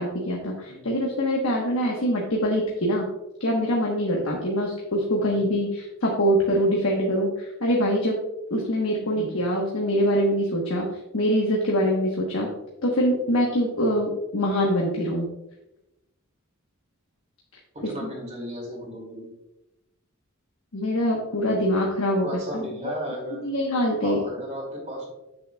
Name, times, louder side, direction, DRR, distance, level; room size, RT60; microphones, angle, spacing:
voice 1, 0.0-3.1 3.4-8.2 8.5-10.9 11.1-12.5 12.8-15.3 17.8-18.1 20.7-22.9 23.4-24.2, equal, 75° left, -2 dB, 1.2 m, -24 dB
voice 2, 17.7-19.3 22.2-23.5 24.0-25.1, equal, 30° right, -1 dB, 2.4 m, -35 dB
8.5 x 6.7 x 2.3 m, 0.93 s
head